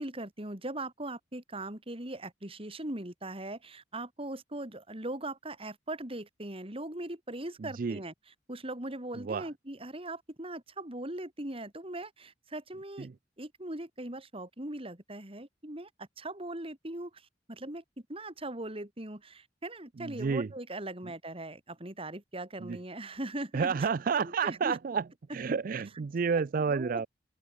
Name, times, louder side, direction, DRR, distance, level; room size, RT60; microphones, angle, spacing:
voice 1, 0.0-8.1 8.5-13.1 13.4-17.8 18.1-23.9 24.2-24.8 26.3-27.1, right 1 dB, 30° right, 3.8 m, -40 dB
voice 2, 7.6-8.0 9.2-9.5 13.0-13.1 20.0-20.5 22.6-22.8 23.5-25.0 25.3-27.1, right 5 dB, 50° right, 0.4 m, -30 dB
open air
head